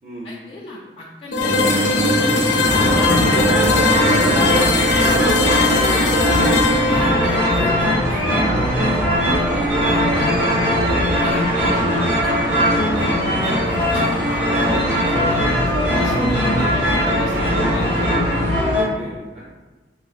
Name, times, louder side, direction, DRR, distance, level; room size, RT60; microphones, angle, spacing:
voice 1, 0.2-5.8 6.3-10.5 11.2-12.4 12.8-17.9, left 2 dB, 35° left, -4 dB, 0.3 m, -34 dB
sound 1, 1.3-9.1, left 2 dB, 80° left, 0.6 m, -20 dB
sound 2, 1.4-7.4, right 1 dB, 90° right, 1.2 m, -25 dB
sound 3, 2.6-18.8, equal, 70° right, 1.2 m, -19 dB
voice 2, 16.0-16.4 18.6-19.5, right 1 dB, 35° right, -5 dB, 0.5 m, -38 dB
3.7 x 2.7 x 2.3 m, 1.2 s
head